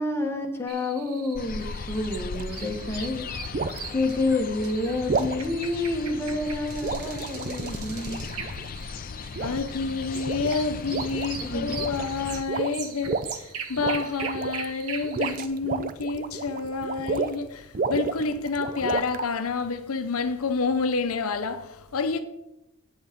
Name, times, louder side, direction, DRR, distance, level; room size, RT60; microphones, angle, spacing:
voice 1, 0.0-3.2 3.9-8.2 11.4-11.8, left 2 dB, 10° left, 1.3 m, -28 dB
sound 1, 0.7-15.5, right 6 dB, 75° right, 1.3 m, -41 dB
sound 2, 1.3-12.4, left 5 dB, 40° left, 0.4 m, -37 dB
sound 3, 2.3-2.6 3.5-3.9 5.1-5.4 6.8-8.7 9.3-9.8 10.1-10.6 10.9-11.3 11.6-12.1 12.5-13.4 13.8-14.7 15.0-17.4 17.7-19.3, right 4 dB, 40° right, 0.5 m, -31 dB
voice 2, 9.4-22.2, left 4 dB, 70° left, 0.7 m, -29 dB
8.8 x 8.4 x 5.2 m
head